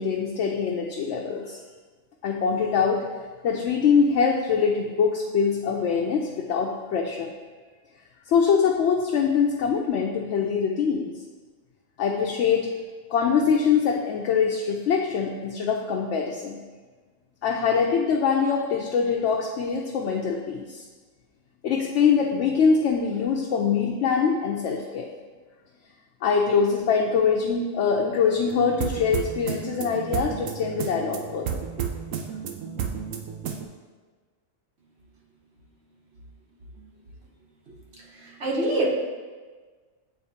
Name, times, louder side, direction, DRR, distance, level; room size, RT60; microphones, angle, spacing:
voice 1, 0.0-1.6 2.2-3.0 3.4-7.3 8.3-11.1 12.0-12.7 13.1-16.6 17.4-20.8 21.6-25.1 26.2-31.6, left 6 dB, 70° left, 0 dB, 0.9 m, -23 dB
sound 1, 28.5-33.6, right 7 dB, 75° right, 1.0 m, -32 dB
voice 2, 37.7-38.9, right 1 dB, 55° right, -3 dB, 1.3 m, -28 dB
8.8 x 3.9 x 2.8 m, 1.4 s
omnidirectional pair, 1.4 m